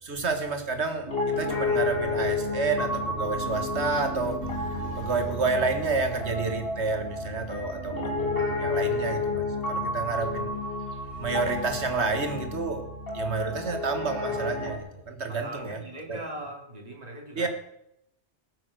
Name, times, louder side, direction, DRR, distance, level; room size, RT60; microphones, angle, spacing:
voice 1, 0.0-10.5 10.9-12.9 13.1-15.8 16.1-16.2 17.4-17.5, right 4 dB, 75° right, 6 dB, 2.0 m, -29 dB
Piano, 1.1-14.8, left 3 dB, 55° left, 2.6 m, -31 dB
voice 2, 15.3-17.5, right 1 dB, 35° right, 0 dB, 2.6 m, -40 dB
19.0 x 7.6 x 6.4 m, 0.81 s
omnidirectional pair, 1.1 m